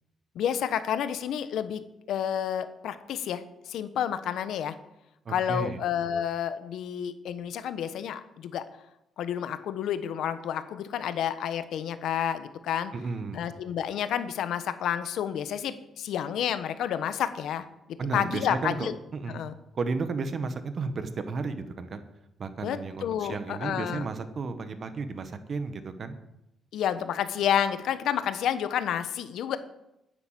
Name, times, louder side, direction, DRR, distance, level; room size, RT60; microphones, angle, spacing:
voice 1, 0.3-1.8 2.1-4.7 5.3-8.6 9.2-12.9 13.3-17.6 18.1-18.9 19.3-19.5 22.6-24.1 26.7-29.6, left 9 dB, 75° left, 11 dB, 1.1 m, -30 dB
voice 2, 5.2-5.8 12.9-13.4 18.0-19.4 19.7-22.0 22.4-26.1, right 4 dB, 45° right, 9 dB, 1.5 m, -33 dB
9.8 x 9.8 x 7.6 m, 0.87 s
cardioid pair, 90°, 0 cm